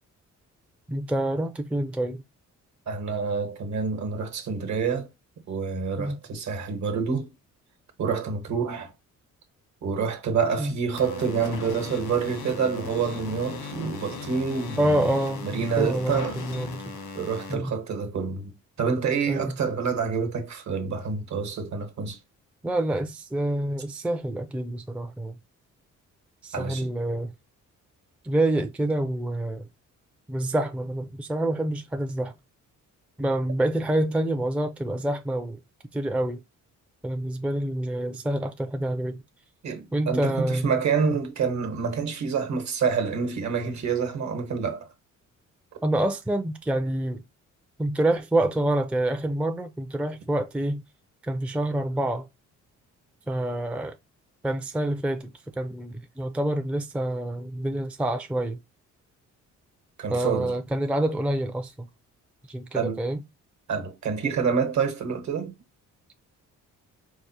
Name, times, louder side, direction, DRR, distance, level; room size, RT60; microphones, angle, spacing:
voice 1, 0.9-2.2 6.0-6.2 10.6-10.7 14.8-16.9 17.5-17.8 19.3-19.5 22.6-25.3 26.4-27.3 28.2-29.7 30.3-32.3 33.2-35.6 35.9-36.4 37.0-39.2 39.9-40.8 45.8-47.2 47.8-50.8 51.2-52.3 53.3-54.0 54.4-58.6 60.1-61.9 62.5-63.2, right 1 dB, 5° right, 0.4 m, -27 dB
voice 2, 2.9-5.1 5.5-7.3 8.0-8.9 9.8-15.1 15.4-16.4 17.1-22.2 26.5-26.9 39.6-44.9 60.0-60.6 62.7-63.0 63.7-65.5, right 5 dB, 60° right, 1.1 m, -27 dB
sound 1, 11.0-17.5, left 5 dB, 85° left, 1.2 m, -38 dB
4.6 x 2.1 x 2.7 m
cardioid pair, 95°, 32 cm